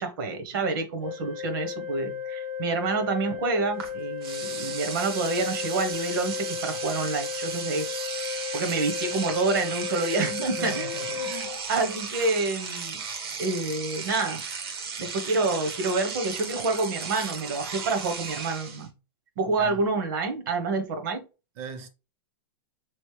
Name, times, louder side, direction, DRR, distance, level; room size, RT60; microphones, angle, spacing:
voice 1, 0.0-7.9 8.5-11.3 11.7-13.0 13.4-14.4 15.0-18.9 19.4-21.2, right 3 dB, 60° right, 1.1 m, -28 dB
Organ, 1.0-12.1, left 8 dB, 15° left, 0.5 m, -35 dB
Engine / Domestic sounds home sounds, 3.8-3.9 4.2-18.9, right 5 dB, 80° right, 1.3 m, -35 dB
voice 2, 10.6-11.6 19.4-19.8 21.6-21.9, right 5 dB, 35° right, 0.7 m, -39 dB
4.0 x 3.1 x 3.2 m
supercardioid pair, 170°, 12 cm